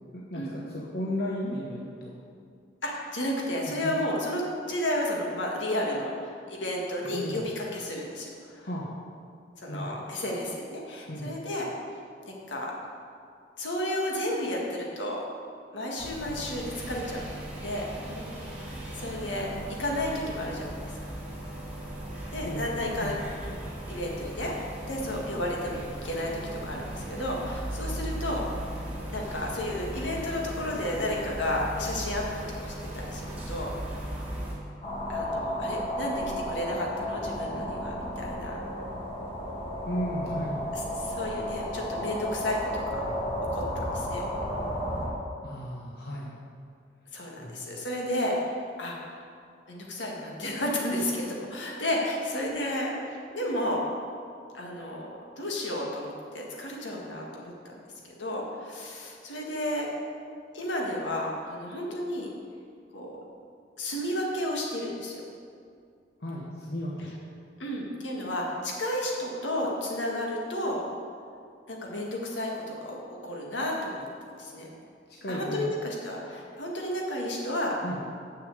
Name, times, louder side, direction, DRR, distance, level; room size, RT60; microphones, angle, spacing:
voice 1, 0.1-2.1 3.7-3.9 7.0-7.5 8.6-8.9 9.7-10.0 11.1-11.3 22.4-22.6 23.0-23.2 39.9-40.6 45.4-46.3 47.4-47.6 66.2-67.1 75.2-75.7 77.8-78.0, equal, 55° left, -4 dB, 1.0 m, -34 dB
voice 2, 2.8-8.7 9.6-11.7 12.3-12.7 13.6-15.2 15.7-17.2 17.6-17.9 18.9-19.5 19.8-20.7 22.3-23.2 23.4-23.6 23.9-28.6 29.1-32.3 32.6-33.7 35.1-38.6 40.7-43.1 43.5-43.6 43.9-44.2 47.1-49.3 49.7-53.8 54.5-57.8 58.2-59.9 60.5-62.3 62.9-63.2 63.8-65.2 67.6-70.8 71.7-73.0 73.2-74.1 74.4-74.7 75.3-77.8, left 1 dB, 80° left, -1 dB, 1.8 m, -32 dB
sound 1, 16.0-34.5, right 1 dB, 10° right, 1.5 m, -37 dB
sound 2, 34.8-45.1, equal, 30° left, 1.6 m, -33 dB
6.9 x 6.6 x 7.9 m, 2.3 s
head